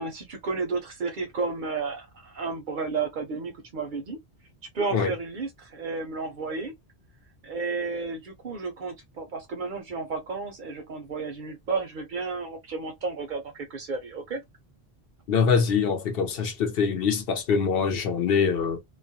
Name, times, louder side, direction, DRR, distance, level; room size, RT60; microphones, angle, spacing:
voice 1, 0.0-4.2 4.7-6.7 7.4-14.4, right 4 dB, 60° right, 0.6 m, -32 dB
voice 2, 15.3-18.8, left 6 dB, 65° left, 0.8 m, -24 dB
2.3 x 2.1 x 2.6 m
omnidirectional pair, 1.1 m